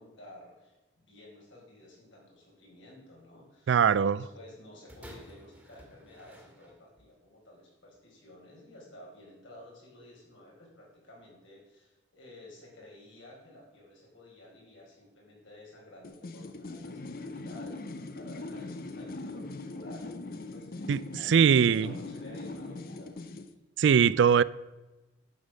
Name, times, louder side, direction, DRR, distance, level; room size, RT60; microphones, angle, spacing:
voice 1, 0.0-23.5, left 1 dB, 75° left, 4.6 m, -52 dB
voice 2, 3.7-4.3 20.9-21.0 21.3-21.9 23.8-24.4, right 7 dB, 70° right, 0.3 m, -21 dB
sound 1, 4.9-7.1 7.9-8.0, equal, 5° right, 1.7 m, -52 dB
sound 2, 16.0-23.5, left 2 dB, 50° left, 0.7 m, -41 dB
10.5 x 7.1 x 6.3 m
head